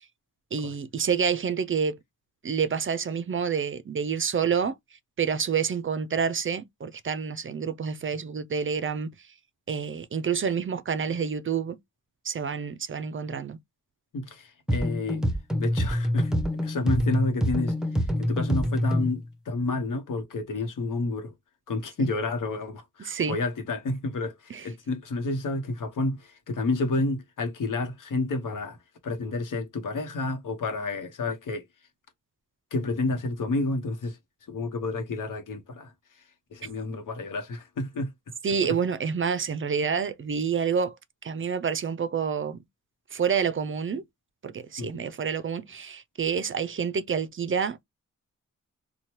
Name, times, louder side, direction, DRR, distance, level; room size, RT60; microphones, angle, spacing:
voice 1, 0.5-2.0 2.4-4.7 5.2-9.1 9.7-11.8 12.2-13.6 22.0-22.1 23.1-23.4 24.5-24.6 38.4-41.0 41.2-42.6 43.1-44.0 44.4-47.8, right 6 dB, 40° right, 0.4 m, -28 dB
voice 2, 14.1-15.2 15.6-21.3 21.7-28.8 29.0-31.6 32.7-34.2 34.5-36.3 36.5-38.1 44.8-45.1, left 2 dB, 80° left, 0.9 m, -30 dB
sound 1, 14.7-19.2, equal, ahead, 0.6 m, -26 dB
2.9 x 2.2 x 3.0 m
cardioid pair, 65°, 31 cm